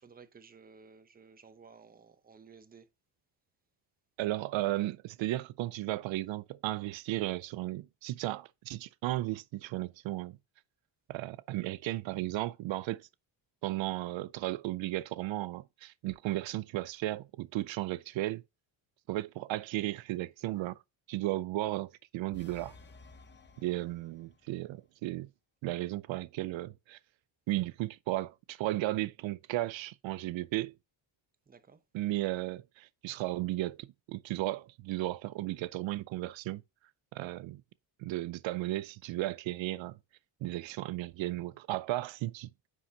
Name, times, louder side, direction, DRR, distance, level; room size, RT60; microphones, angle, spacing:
voice 1, 0.0-2.9 31.5-31.8, right 5 dB, 20° right, 0.8 m, -55 dB
voice 2, 4.2-10.4 11.1-13.1 13.6-18.4 19.1-20.8 21.1-22.8 23.6-25.3 25.6-27.0 27.5-30.7 31.9-36.6 37.1-37.6 38.0-40.0 40.4-42.5, right 16 dB, 75° right, 0.5 m, -35 dB
sound 1, 22.3-24.6, left 3 dB, 25° left, 0.9 m, -55 dB
9.5 x 5.8 x 2.8 m
cardioid pair, 160°, 46 cm